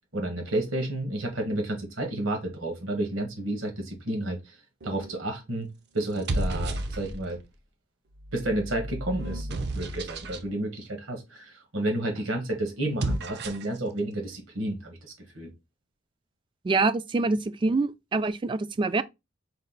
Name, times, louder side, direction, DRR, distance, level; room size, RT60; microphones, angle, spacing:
voice 1, 0.1-4.6 4.8-5.7 5.9-7.4 8.3-9.5 9.7-15.5, right 1 dB, 75° right, 1.5 m, -31 dB
sound 1, 4.8-5.2 6.0-7.4 8.1-10.5 12.8-13.8, right 1 dB, 55° right, 0.6 m, -33 dB
voice 2, 16.6-19.0, right 3 dB, 25° right, 0.3 m, -25 dB
5.3 x 2.4 x 3.8 m
head